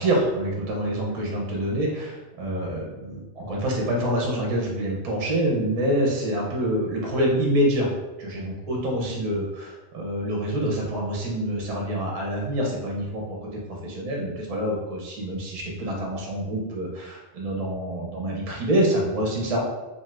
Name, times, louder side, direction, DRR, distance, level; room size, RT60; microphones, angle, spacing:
voice 1, 0.0-7.9 8.2-13.5 13.8-19.6, right 1 dB, 40° right, -2 dB, 0.6 m, -26 dB
2.6 x 2.4 x 3.2 m, 1.1 s
omnidirectional pair, 1.1 m